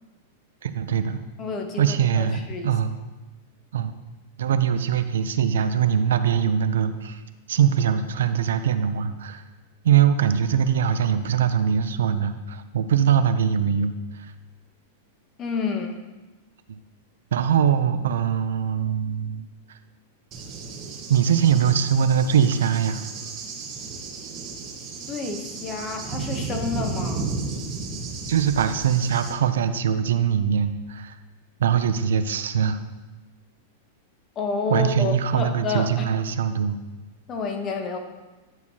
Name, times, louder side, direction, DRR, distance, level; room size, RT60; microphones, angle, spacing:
voice 1, 0.6-1.2 1.8-3.0 3.7-3.9 4.4-7.2 7.5-9.4 9.8-13.9 16.7-16.8 17.3-19.4 21.1-23.0 28.3-31.2 31.6-32.8 34.7-36.8, right 8 dB, 85° right, 10 dB, 0.4 m, -22 dB
voice 2, 1.4-2.8 15.4-16.0 25.1-27.3 34.4-36.1 37.3-38.0, left 4 dB, 30° left, 4 dB, 0.9 m, -29 dB
Cricket / Thunder, 20.3-29.3, right 4 dB, 35° right, 0.9 m, -33 dB
10.5 x 4.5 x 2.8 m, 1.2 s
supercardioid pair, 135°, 0 cm